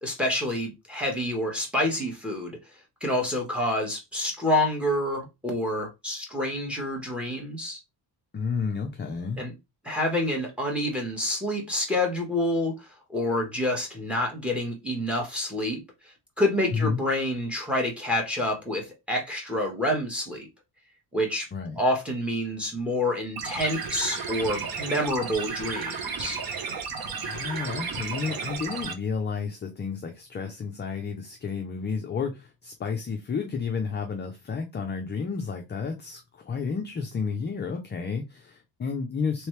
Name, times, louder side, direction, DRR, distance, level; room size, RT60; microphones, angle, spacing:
voice 1, 0.0-2.6 3.0-7.8 9.4-9.5 9.8-15.8 16.4-20.5 21.1-21.5 21.7-26.4, left 1 dB, 5° right, 1.2 m, -28 dB
voice 2, 8.3-9.4 16.7-17.0 21.5-21.8 27.2-39.5, left 5 dB, 25° left, 0.4 m, -31 dB
sound 1, 23.4-28.9, right 5 dB, 50° right, 0.8 m, -33 dB
3.3 x 3.1 x 3.1 m
cardioid pair, 155°, 46 cm